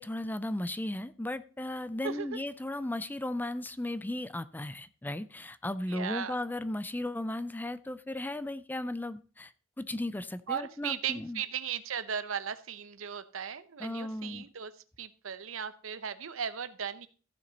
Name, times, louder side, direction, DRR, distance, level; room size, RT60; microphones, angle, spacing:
voice 1, 0.0-9.5 9.8-11.4 13.8-14.5, left 1 dB, 10° left, 13 dB, 0.4 m, -36 dB
voice 2, 5.9-6.4 10.5-14.7 15.0-17.1, right 7 dB, 85° right, 14 dB, 0.8 m, -36 dB
14.5 x 6.3 x 4.0 m, 0.37 s
head